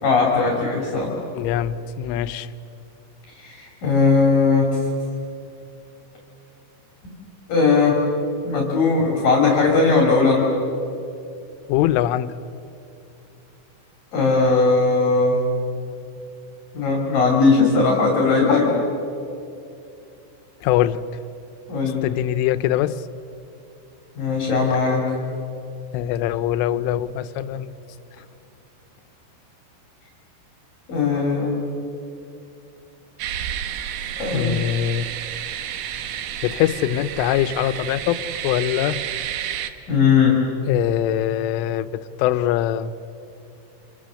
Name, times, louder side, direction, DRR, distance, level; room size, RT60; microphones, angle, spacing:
voice 1, 0.0-1.1 3.4-4.8 7.5-8.0 8.4-10.5 14.1-15.4 16.7-18.7 21.7-22.1 24.2-25.1 30.9-31.6 34.2-34.5 39.9-40.4, left 4 dB, 50° left, -1 dB, 4.1 m, -18 dB
voice 2, 1.3-2.5 11.7-12.4 20.6-21.0 22.0-23.0 25.9-27.7 34.3-35.1 36.4-39.0 40.7-42.9, left 12 dB, 90° left, 13 dB, 3.3 m, -23 dB
sound 1, 33.2-39.7, right 10 dB, 85° right, 2.0 m, -31 dB
29.5 x 26.5 x 6.4 m, 2.7 s
omnidirectional pair, 5.5 m